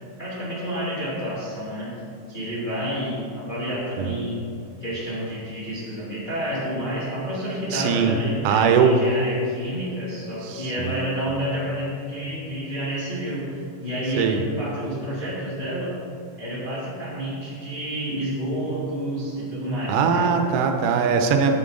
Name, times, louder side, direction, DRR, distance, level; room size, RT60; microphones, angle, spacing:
voice 1, 0.2-1.9 2.3-4.4 4.8-15.9 16.4-20.3, equal, 25° left, -9 dB, 1.1 m, -29 dB
voice 2, 7.7-8.2 8.4-9.0 10.4-11.0 14.2-14.4 19.9-21.5, right 6 dB, 85° right, 5 dB, 2.2 m, -21 dB
8.2 x 7.8 x 3.7 m, 2.5 s
omnidirectional pair, 3.6 m